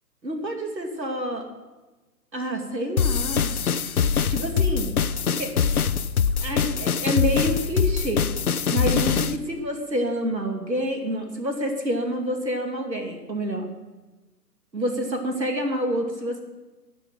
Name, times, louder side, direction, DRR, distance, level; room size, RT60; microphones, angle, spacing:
voice 1, 0.2-1.5 2.3-3.5 4.3-4.9 5.3-5.5 6.4-8.3 8.7-13.7 14.7-16.4, equal, 90° right, 4 dB, 2.6 m, -28 dB
sound 1, 3.0-9.4, left 6 dB, 60° left, 0.7 m, -23 dB
12.5 x 7.9 x 7.5 m, 1.2 s
figure-of-eight pair, 140°, 50 cm